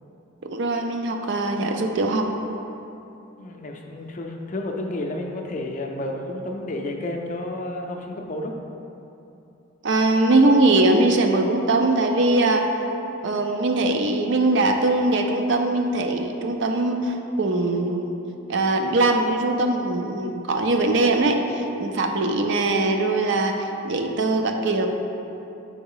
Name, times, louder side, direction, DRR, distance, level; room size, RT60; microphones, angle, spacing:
voice 1, 0.4-2.3 9.8-12.7 13.2-18.1 18.5-24.9, right 2 dB, 60° right, 4 dB, 0.5 m, -21 dB
voice 2, 3.4-8.6, left 1 dB, 40° left, 2 dB, 0.5 m, -31 dB
4.8 x 3.9 x 5.5 m, 2.8 s
head